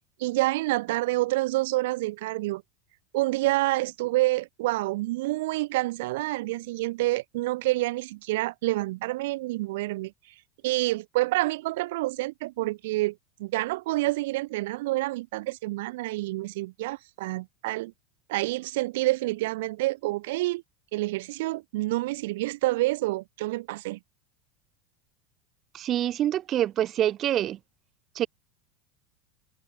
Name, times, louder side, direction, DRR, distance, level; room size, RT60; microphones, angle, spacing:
voice 1, 0.2-2.6 3.1-10.1 10.6-17.9 18.3-20.6 20.9-24.0, right 19 dB, 70° right, 1.7 m, -28 dB
voice 2, 25.7-27.6 28.1-28.3, right 11 dB, 30° right, 1.5 m, -26 dB
supercardioid pair, 170°, 0 cm